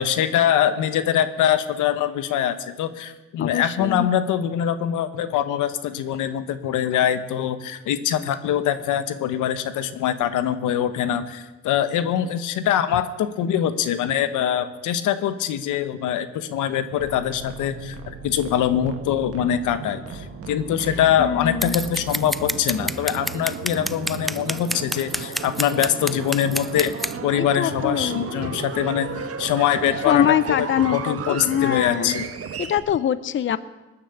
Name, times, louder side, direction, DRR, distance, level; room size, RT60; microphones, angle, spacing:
voice 1, 0.0-26.9 27.2-29.1 29.4-32.3, left 10 dB, 90° left, 11 dB, 1.1 m, -23 dB
voice 2, 3.4-4.1 21.2-21.8 27.4-28.6 30.1-32.1 32.6-33.6, left 10 dB, 40° left, 15 dB, 0.6 m, -23 dB
sound 1, 16.9-32.8, right 6 dB, 50° right, 1.5 m, -34 dB
Scissors, 21.6-27.1, equal, ahead, 0.5 m, -28 dB
18.5 x 10.0 x 7.0 m, 1.1 s
cardioid pair, 90°, 30 cm